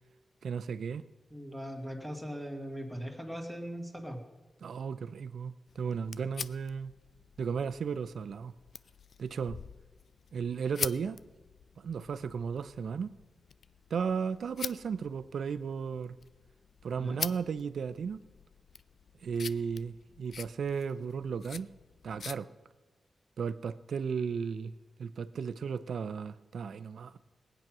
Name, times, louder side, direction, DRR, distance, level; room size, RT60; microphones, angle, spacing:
voice 1, 0.4-1.0 4.6-6.9 7.4-8.5 9.2-9.6 10.3-11.2 11.8-13.1 13.9-16.2 16.8-18.2 19.2-21.7 22.0-22.5 23.4-24.7 25.0-27.2, right 6 dB, 75° right, 0.6 m, -35 dB
voice 2, 1.3-4.2 17.0-17.2, equal, ahead, 2.1 m, -39 dB
sound 1, 5.7-22.4, left 6 dB, 65° left, 0.3 m, -45 dB
19.5 x 9.0 x 6.1 m
wide cardioid pair, 105°, 0 cm